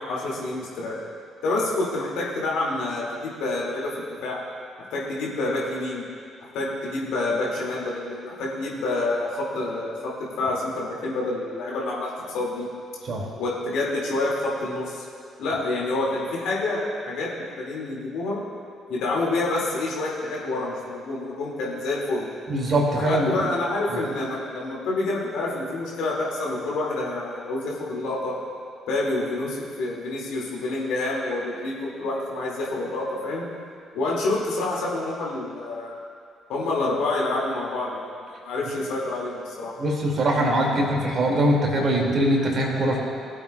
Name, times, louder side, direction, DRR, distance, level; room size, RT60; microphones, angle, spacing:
voice 1, 0.1-1.0 1.4-3.9 4.2-4.4 4.9-6.0 6.4-12.7 13.4-15.0 15.4-18.4 18.9-22.3 22.9-28.3 28.9-33.5 33.9-36.0 36.5-39.7, left 2 dB, 65° left, -4 dB, 2.3 m, -28 dB
voice 2, 22.5-23.4 39.8-43.0, right 1 dB, 50° right, -1 dB, 2.4 m, -22 dB
19.0 x 8.3 x 2.3 m, 2.3 s
figure-of-eight pair, 45°, 0 cm